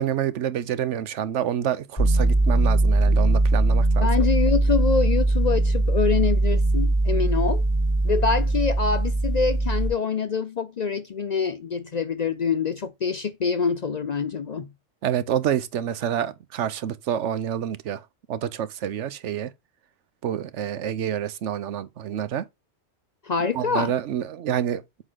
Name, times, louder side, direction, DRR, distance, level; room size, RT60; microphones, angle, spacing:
voice 1, 0.0-4.1 15.0-18.0 18.3-19.5 20.2-22.5 23.5-24.8, right 10 dB, 85° right, 1.0 m, -27 dB
sound 1, 2.0-9.9, right 2 dB, 30° left, 4.3 m, -21 dB
voice 2, 4.0-7.6 8.0-14.7 23.2-23.9, left 5 dB, 50° left, 0.5 m, -25 dB
8.0 x 3.8 x 3.7 m
omnidirectional pair, 1.2 m